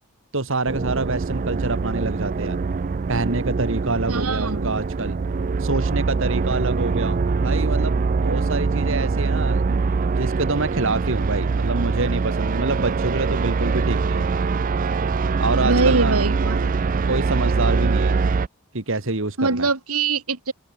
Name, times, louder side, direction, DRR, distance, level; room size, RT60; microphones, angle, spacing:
voice 1, 0.3-2.6 3.1-5.2 5.6-9.8 10.1-14.3 15.4-16.3 17.1-18.2 18.7-19.7, right 3 dB, 60° right, 1.9 m, -26 dB
sound 1, 0.7-18.5, right 4 dB, 40° right, 0.4 m, -23 dB
voice 2, 4.1-4.7 15.6-16.7 19.4-20.5, right 3 dB, 90° right, 2.6 m, -23 dB
open air
head